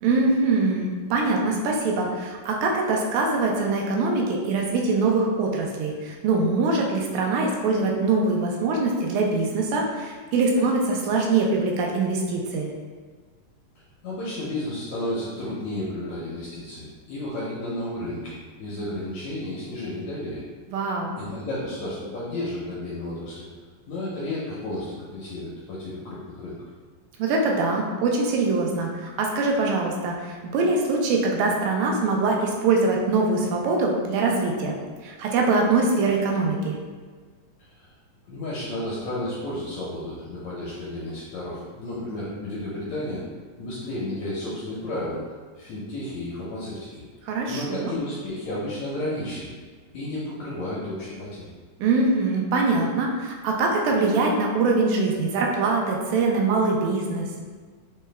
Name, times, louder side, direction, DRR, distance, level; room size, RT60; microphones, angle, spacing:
voice 1, 0.0-12.7 20.7-21.1 27.2-34.8 35.0-36.8 47.2-47.9 51.8-57.3, right 3 dB, 90° right, 0 dB, 2.3 m, -23 dB
voice 2, 14.0-20.4 21.2-23.4 23.9-26.6 37.6-37.9 38.3-43.2 43.6-45.2 45.6-47.0 47.5-49.5 49.9-51.4, left 1 dB, 80° left, -6 dB, 1.6 m, -32 dB
5.7 x 2.2 x 3.2 m, 1.5 s
omnidirectional pair, 3.9 m